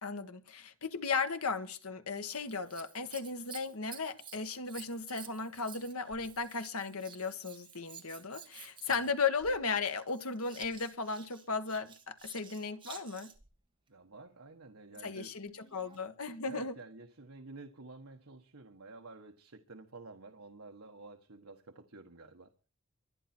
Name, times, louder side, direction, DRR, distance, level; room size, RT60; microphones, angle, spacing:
voice 1, 0.0-13.3 15.0-16.8, left 4 dB, 90° left, 1.6 m, -36 dB
Scissors, 2.2-13.5 15.5-16.1 16.8-16.9, right 7 dB, 25° right, 2.1 m, -52 dB
voice 2, 13.9-15.3 16.4-22.5, right 3 dB, 75° right, 1.4 m, -51 dB
23.5 x 9.6 x 4.5 m
head